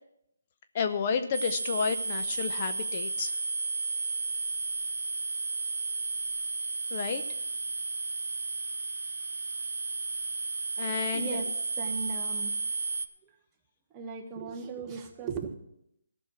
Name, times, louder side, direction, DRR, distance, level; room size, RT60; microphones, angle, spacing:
voice 1, 0.7-3.4 6.9-7.2 10.8-11.3, left 6 dB, 35° left, 9 dB, 0.7 m, -31 dB
sound 1, 1.3-13.1, right 4 dB, 75° right, 0.7 m, -33 dB
voice 2, 11.1-12.6 13.2-13.3 13.9-15.5, right 5 dB, 15° right, 2 dB, 1.1 m, -37 dB
15.0 x 6.2 x 6.1 m, 0.78 s
hypercardioid pair, 155°, 0 cm